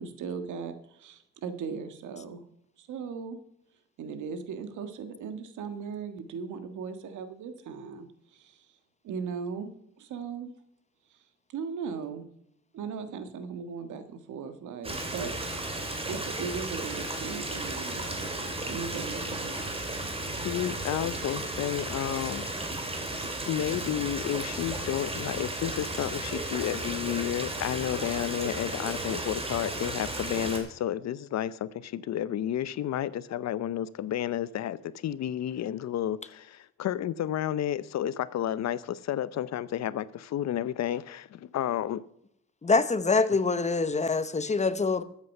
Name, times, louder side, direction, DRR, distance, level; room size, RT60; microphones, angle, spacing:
voice 1, 0.0-2.4 2.8-3.4 4.0-8.7 9.0-9.7 10.0-10.5 11.5-12.2 12.7-19.8, right 6 dB, 75° right, 1.6 m, -38 dB
Stream, 14.8-30.6, right 1 dB, 20° right, 2.9 m, -34 dB
voice 2, 20.4-22.5 23.5-42.0, left 11 dB, 60° left, 0.7 m, -31 dB
voice 3, 42.6-45.0, left 4 dB, 25° left, 0.8 m, -25 dB
13.0 x 8.3 x 5.4 m
cardioid pair, 90°, 30 cm